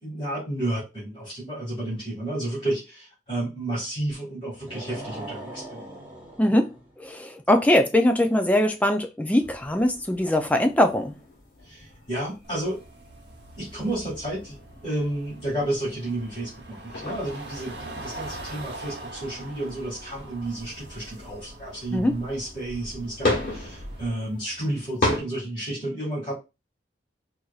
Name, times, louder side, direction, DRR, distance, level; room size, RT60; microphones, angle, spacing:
voice 1, 0.0-5.8 11.6-12.8 13.6-26.3, right 1 dB, 30° left, 2.1 m, -31 dB
sound 1, 4.6-6.9, right 1 dB, 10° right, 1.1 m, -40 dB
voice 2, 6.4-11.1 21.9-22.1, left 1 dB, 10° left, 0.4 m, -22 dB
sound 2, 9.4-25.2, left 2 dB, 50° left, 1.4 m, -36 dB
sound 3, 12.4-24.1, right 1 dB, 65° right, 0.9 m, -42 dB
4.5 x 2.7 x 2.4 m
head